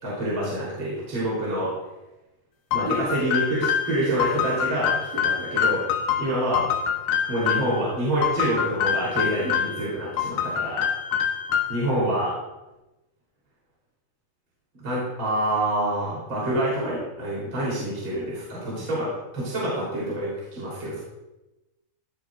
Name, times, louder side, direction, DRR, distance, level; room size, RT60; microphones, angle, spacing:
voice 1, 0.0-1.7 2.7-5.8 6.2-6.7 7.3-10.9 11.7-12.3 14.8-21.0, right 1 dB, 35° right, -7 dB, 4.3 m, -27 dB
sound 1, 2.7-7.8 8.2-9.8 10.2-11.9, left 8 dB, 75° left, 2.7 m, -25 dB
16.5 x 10.5 x 2.6 m, 1.0 s
omnidirectional pair, 4.2 m